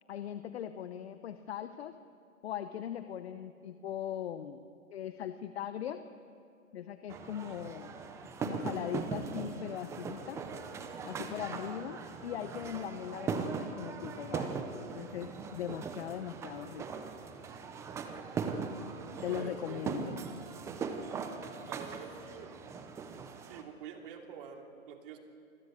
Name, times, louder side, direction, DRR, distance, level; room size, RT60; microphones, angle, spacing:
voice 1, 0.1-2.0 2.4-4.6 4.9-6.0 6.7-8.0 8.4-10.4 11.0-16.9 17.4-17.6 19.2-20.2, left 10 dB, 50° left, 11 dB, 1.0 m, -40 dB
sound 1, 7.1-23.6, right 5 dB, 5° right, 0.7 m, -40 dB
voice 2, 19.3-19.9 21.7-22.6 23.4-25.2, right 7 dB, 40° right, 3 dB, 3.0 m, -47 dB
28.5 x 21.0 x 6.6 m, 2.5 s
hypercardioid pair, 140°, 41 cm